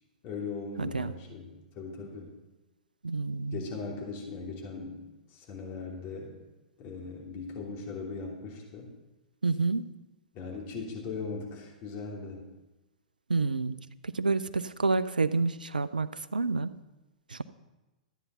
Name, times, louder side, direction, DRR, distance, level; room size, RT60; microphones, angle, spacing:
voice 1, 0.2-2.3 3.5-6.4 6.8-8.9 10.3-12.5, left 4 dB, 40° left, -1 dB, 3.0 m, -39 dB
voice 2, 0.8-1.1 3.0-3.6 9.4-9.9 13.3-16.7 17.3-17.4, right 3 dB, 85° right, 15 dB, 0.5 m, -29 dB
13.5 x 9.2 x 5.5 m, 1.1 s
figure-of-eight pair, 105°, 4 cm